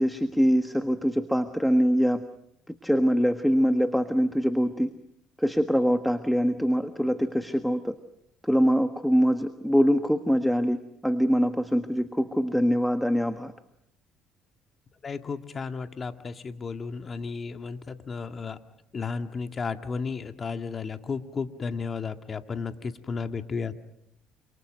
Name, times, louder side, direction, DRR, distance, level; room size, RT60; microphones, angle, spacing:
voice 1, 0.0-2.2 2.8-4.9 5.4-7.9 8.4-13.5, equal, ahead, 8 dB, 1.5 m, -23 dB
voice 2, 15.0-18.6 18.9-23.7, left 5 dB, 35° left, 7 dB, 2.0 m, -33 dB
28.5 x 27.5 x 6.5 m, 0.77 s
cardioid pair, 100°, 0 cm